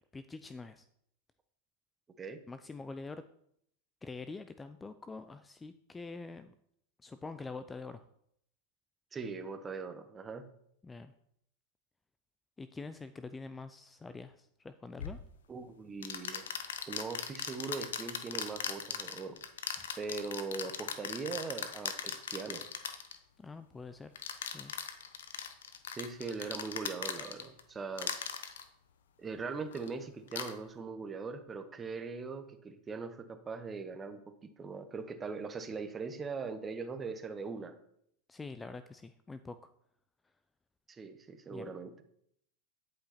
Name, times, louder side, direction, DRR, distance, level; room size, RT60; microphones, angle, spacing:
voice 1, 0.1-0.8 2.5-3.2 4.0-6.5 7.0-8.1 10.8-11.1 12.6-15.2 23.4-24.1 24.4-24.7 38.3-39.6 41.5-41.7, left 3 dB, 15° left, 11 dB, 0.4 m, -45 dB
voice 2, 9.1-10.4 15.5-16.5 16.9-19.4 20.0-22.7 25.9-28.1 29.2-34.2 34.6-37.7 40.9-42.0, right 4 dB, 20° right, 9 dB, 1.0 m, -40 dB
sound 1, 15.0-15.2 16.0-23.2 24.2-27.6 28.0-28.6 29.7-29.9 30.3-30.5, left 7 dB, 85° left, 0.9 m, -39 dB
10.5 x 5.6 x 4.3 m, 0.71 s
hypercardioid pair, 115°, 0 cm